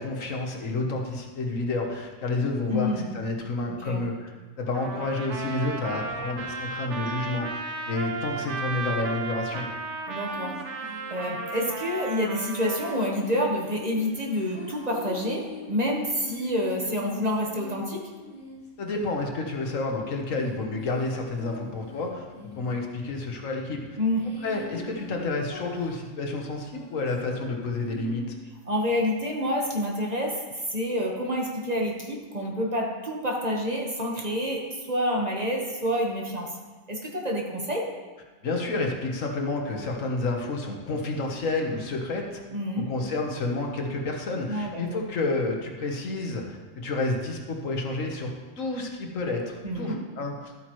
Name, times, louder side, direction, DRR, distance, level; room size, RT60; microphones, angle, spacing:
voice 1, 0.0-4.3 4.6-7.6 7.9-9.7 18.8-22.3 22.5-24.0 24.4-28.3 38.4-42.4 42.8-50.5, left 2 dB, 80° left, 2 dB, 1.6 m, -30 dB
voice 2, 2.7-3.1 3.8-4.0 10.1-10.6 11.1-18.1 24.0-24.3 28.7-36.6 36.9-37.9 42.5-42.9 44.5-44.8 49.6-50.1, equal, 30° right, -1 dB, 1.4 m, -28 dB
Trumpet, 4.7-13.1, right 3 dB, 65° right, 1.0 m, -34 dB
sound 1, 10.3-11.6 12.5-28.4, left 1 dB, 60° left, 3.0 m, -44 dB
13.0 x 8.4 x 3.1 m, 1.3 s
omnidirectional pair, 1.3 m